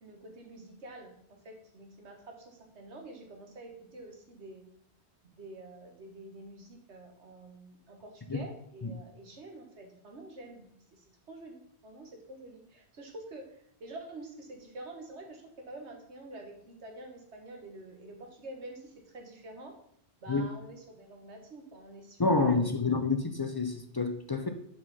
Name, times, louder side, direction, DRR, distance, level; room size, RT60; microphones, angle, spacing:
voice 1, 0.0-4.7 5.3-19.7 20.2-22.7, right 2 dB, 80° right, 3 dB, 1.6 m, -48 dB
voice 2, 22.2-24.5, left 3 dB, 35° left, 6 dB, 0.4 m, -28 dB
5.7 x 5.5 x 5.4 m, 0.71 s
omnidirectional pair, 1.1 m